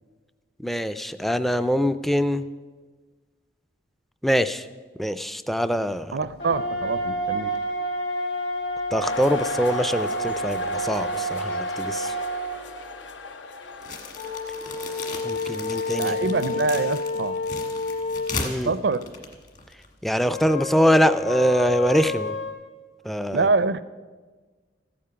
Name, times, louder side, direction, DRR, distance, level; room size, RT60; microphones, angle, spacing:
voice 1, 0.6-2.4 4.2-4.7 5.0-6.1 8.9-12.1 15.2-16.3 18.4-18.7 20.0-22.4 23.1-23.5, equal, ahead, 12 dB, 0.3 m, -23 dB
voice 2, 6.1-7.5 16.0-17.4 18.6-19.0 23.3-23.8, right 4 dB, 65° right, 15 dB, 0.5 m, -25 dB
sound 1, 6.4-12.6 14.2-18.4 20.3-22.5, left 1 dB, 70° left, 3.1 m, -29 dB
sound 2, 9.0-15.3, left 3 dB, 90° left, 0.8 m, -37 dB
sound 3, 13.8-19.9, left 4 dB, 45° left, 1.5 m, -36 dB
14.5 x 8.7 x 5.7 m, 1.4 s
head